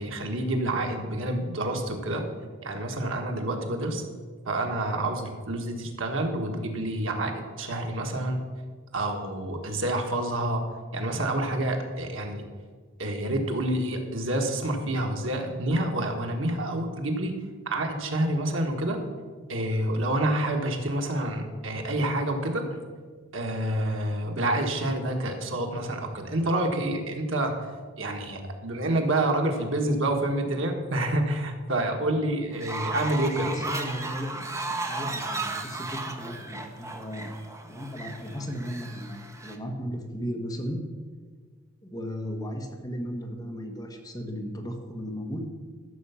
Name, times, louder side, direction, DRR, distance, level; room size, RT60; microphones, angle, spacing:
voice 1, 0.0-2.2 2.6-4.0 4.4-8.4 8.9-12.4 13.0-17.3 17.6-19.0 19.5-22.6 23.3-27.5 28.0-33.5, right 1 dB, 90° right, 3 dB, 1.7 m, -28 dB
Fowl, 32.5-39.6, right 3 dB, 15° right, 0.9 m, -35 dB
voice 2, 33.3-34.3 34.8-37.3 37.6-40.8 41.8-45.5, equal, 20° left, 2 dB, 1.5 m, -35 dB
13.0 x 7.1 x 5.8 m, 1.5 s
head